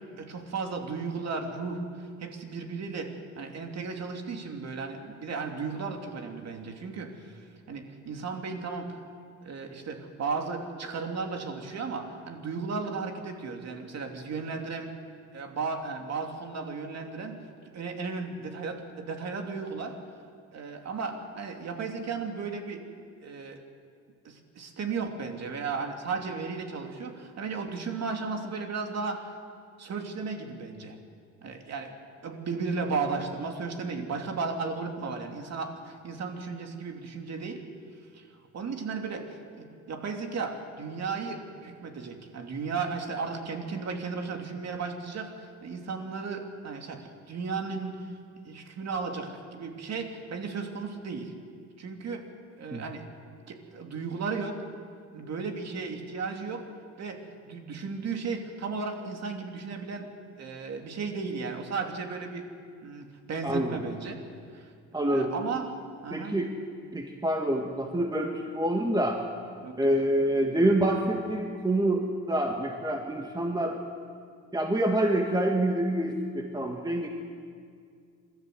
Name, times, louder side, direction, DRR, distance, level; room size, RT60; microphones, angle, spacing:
voice 1, 0.2-9.0 9.4-14.9 15.3-17.4 17.7-20.0 20.5-22.8 23.2-23.6 24.2-29.3 29.8-31.0 31.4-31.9 32.2-37.6 38.1-38.2 38.5-48.0 48.4-51.3 51.8-52.3 52.6-53.0 53.5-54.6 55.1-56.7 57.0-60.1 60.4-62.5 62.8-64.2 64.5-64.7 65.1-65.7 66.0-66.3 69.6-69.9, right 4 dB, 60° right, 4 dB, 2.8 m, -35 dB
voice 2, 63.4-63.8 64.9-65.3 66.1-66.5 66.9-69.2 69.8-73.8 74.5-77.1, right 1 dB, 15° right, 2 dB, 1.9 m, -27 dB
28.0 x 13.5 x 7.8 m, 2.2 s
cardioid pair, 90°, 30 cm